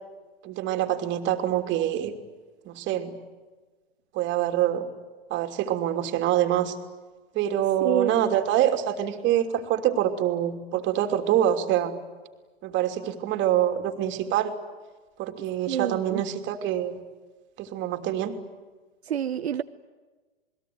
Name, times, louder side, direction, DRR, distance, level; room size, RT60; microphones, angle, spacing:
voice 1, 0.4-2.1 2.6-3.1 4.1-4.8 5.3-6.8 7.3-12.0 12.6-14.5 15.2-17.0 17.6-18.3, right 11 dB, 35° right, 6 dB, 3.0 m, -25 dB
voice 2, 7.8-8.2 15.7-16.2 19.1-19.6, right 9 dB, 80° right, 10 dB, 0.9 m, -27 dB
27.5 x 21.0 x 9.5 m, 1.3 s
hypercardioid pair, 110°, 31 cm